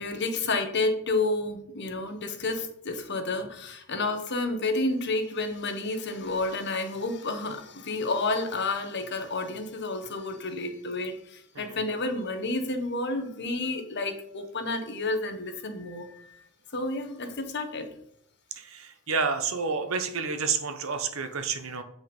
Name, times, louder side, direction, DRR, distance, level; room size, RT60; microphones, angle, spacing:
voice 1, 0.0-16.4 16.7-17.9 21.7-21.8, left 2 dB, 50° left, 6 dB, 1.3 m, -30 dB
voice 2, 18.5-21.8, right 5 dB, 70° right, 8 dB, 1.1 m, -30 dB
8.5 x 5.3 x 5.4 m, 0.71 s
head